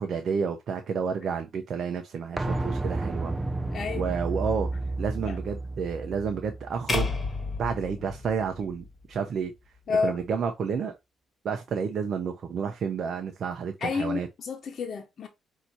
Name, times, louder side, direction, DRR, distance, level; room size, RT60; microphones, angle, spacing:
voice 1, 0.0-3.3 4.0-4.7 5.0-7.1 7.6-9.5 10.0-10.9 11.4-14.3, right 6 dB, 60° right, 0.6 m, -30 dB
sound 1, 2.4-8.0 8.3-8.4, right 2 dB, 20° right, 0.5 m, -32 dB
voice 2, 3.7-4.0 5.3-5.4 9.9-10.2 13.8-15.3, left 5 dB, 55° left, 1.0 m, -30 dB
sound 2, 6.9-9.1, left 3 dB, 25° left, 1.4 m, -32 dB
5.8 x 2.7 x 2.7 m
cardioid pair, 90°, 0 cm